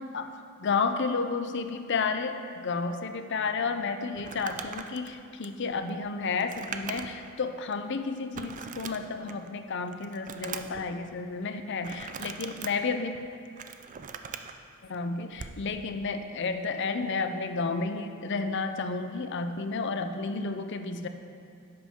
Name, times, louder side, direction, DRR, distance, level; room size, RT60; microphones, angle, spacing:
voice 1, 0.6-13.2 14.9-21.1, left 4 dB, 60° left, 8 dB, 0.6 m, -31 dB
Crumpling crinkling, 4.1-7.3 7.7-7.8 8.3-9.5 9.9-10.8 11.8-12.7 13.3-14.5 15.3-15.6, right 6 dB, 40° right, 0.4 m, -40 dB
10.5 x 8.0 x 3.7 m, 2.3 s
head